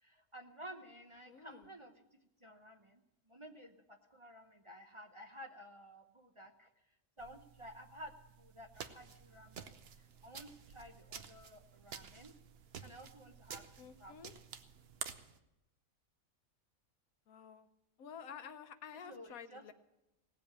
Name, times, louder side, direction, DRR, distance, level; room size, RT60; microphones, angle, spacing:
voice 1, 0.0-2.0 2.4-6.7 7.2-8.1 8.4-12.3 12.8-14.2 19.1-19.7, equal, 30° right, 3 dB, 0.7 m, -53 dB
voice 2, 1.3-1.7 13.8-14.3 17.3-17.7 18.0-19.7, left 7 dB, 85° left, 10 dB, 1.3 m, -51 dB
sound 1, 7.2-15.0, right 8 dB, 85° right, 1.2 m, -62 dB
sound 2, 8.8-15.4, right 7 dB, 50° right, 1.0 m, -50 dB
17.5 x 7.7 x 8.6 m, 0.92 s
omnidirectional pair, 1.4 m